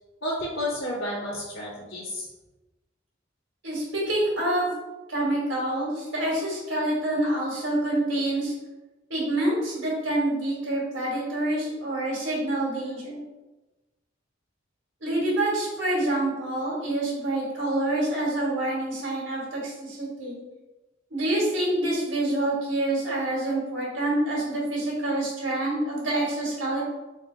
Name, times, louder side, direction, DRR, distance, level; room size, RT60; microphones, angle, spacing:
voice 1, 0.2-2.3, left 1 dB, 80° left, -11 dB, 1.4 m, -31 dB
voice 2, 3.6-4.7 5.1-8.5 9.1-13.2 15.0-20.4 21.1-26.8, right 1 dB, 75° right, -5 dB, 1.5 m, -27 dB
3.4 x 2.7 x 3.8 m, 1.1 s
head